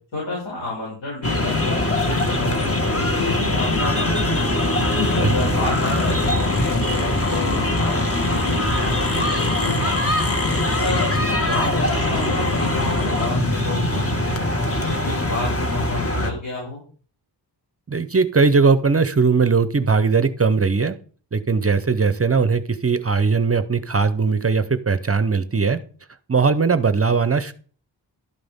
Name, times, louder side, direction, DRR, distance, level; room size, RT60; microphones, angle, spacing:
voice 1, 0.1-4.6 5.2-10.2 10.7-14.5 14.9-16.8, left 2 dB, 85° left, -5 dB, 5.8 m, -31 dB
sound 1, 1.2-16.3, left 1 dB, 30° left, 1.6 m, -21 dB
voice 2, 17.9-21.0 21.3-25.8 26.3-27.5, right 5 dB, 30° right, 13 dB, 0.6 m, -19 dB
11.5 x 9.3 x 3.5 m, 0.41 s
wide cardioid pair, 115°, 44 cm